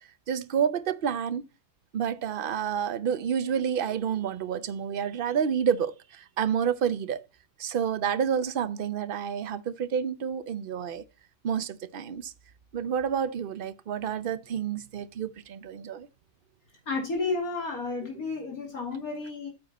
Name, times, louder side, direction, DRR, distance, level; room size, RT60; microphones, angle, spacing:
voice 1, 0.3-1.4 1.9-7.2 7.6-11.0 11.4-12.3 12.7-16.1, right 8 dB, 50° right, 0.7 m, -29 dB
voice 2, 16.9-19.5, left 3 dB, 85° left, 3.1 m, -31 dB
9.2 x 6.7 x 4.0 m
omnidirectional pair, 1.5 m